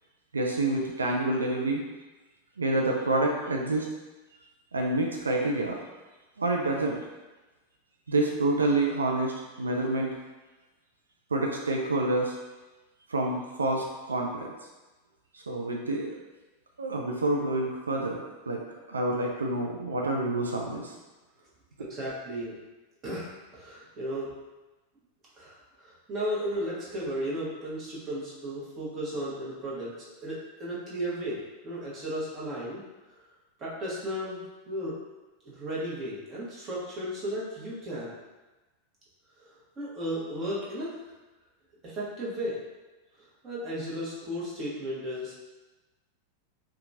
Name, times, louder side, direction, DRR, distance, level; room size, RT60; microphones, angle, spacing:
voice 1, 0.3-1.8 2.6-3.9 4.7-5.8 6.4-7.0 8.1-10.1 11.3-12.3 13.1-14.5 15.3-16.2 16.8-18.6 18.9-20.9 21.8-21.9, right 2 dB, 85° right, 0 dB, 0.3 m, -28 dB
voice 2, 21.9-22.5 23.0-24.3 25.4-29.9 30.2-32.8 33.6-34.9 35.4-38.1 39.8-40.9 41.9-42.6 43.4-45.4, equal, 35° right, -7 dB, 1.1 m, -34 dB
2.8 x 2.3 x 2.6 m, 1.1 s
hypercardioid pair, 95°, 0 cm